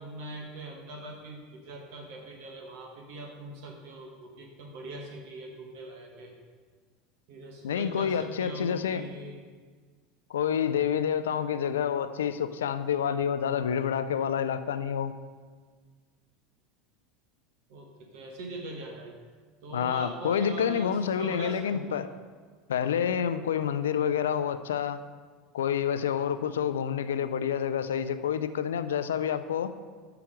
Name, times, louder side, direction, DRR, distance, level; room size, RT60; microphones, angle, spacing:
voice 1, 0.0-6.3 7.3-9.5 17.7-19.2 19.6-22.1, right 2 dB, 70° right, 1 dB, 1.1 m, -42 dB
voice 2, 7.6-9.0 10.3-15.1 19.7-22.1 22.7-25.0 25.5-29.7, left 8 dB, 85° left, 12 dB, 0.3 m, -28 dB
5.8 x 5.8 x 5.0 m, 1.5 s
hypercardioid pair, 85°, 0 cm